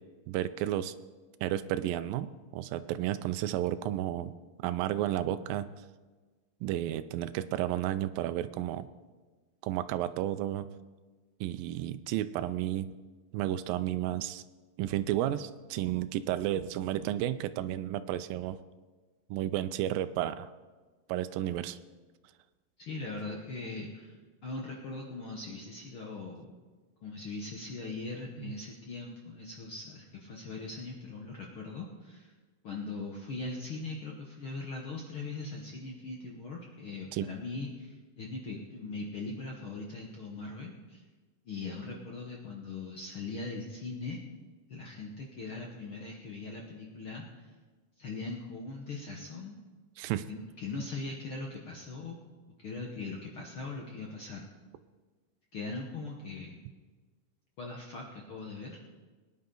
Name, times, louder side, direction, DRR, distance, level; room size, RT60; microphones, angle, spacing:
voice 1, 0.3-0.9 1.4-4.3 4.6-5.7 6.6-8.9 9.6-10.7 11.4-12.9 13.3-14.4 14.8-18.6 19.3-20.5 21.1-21.8 37.1-37.3 50.0-50.3, right 13 dB, 85° right, 11 dB, 2.3 m, -32 dB
voice 2, 22.8-26.5 27.0-32.3 32.6-41.0 41.4-44.2 44.7-47.5 48.0-49.6 50.3-52.2 52.6-54.5 55.5-56.6 57.6-58.8, left 3 dB, 60° left, -1 dB, 1.4 m, -40 dB
22.0 x 9.9 x 3.9 m, 1.3 s
omnidirectional pair, 4.0 m